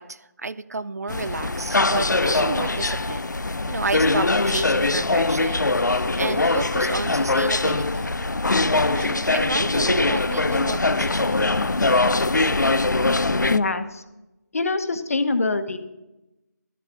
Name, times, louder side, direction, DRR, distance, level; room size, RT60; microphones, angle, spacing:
voice 1, 0.0-3.3 3.7-8.2 8.9-11.4, right 3 dB, 60° right, 16 dB, 0.5 m, -31 dB
sound 1, 1.1-13.6, left 2 dB, 85° left, 0.5 m, -22 dB
voice 2, 13.5-14.0 14.5-15.8, left 3 dB, 55° left, 10 dB, 1.0 m, -24 dB
12.5 x 7.0 x 6.2 m, 0.97 s
figure-of-eight pair, 155°, 10 cm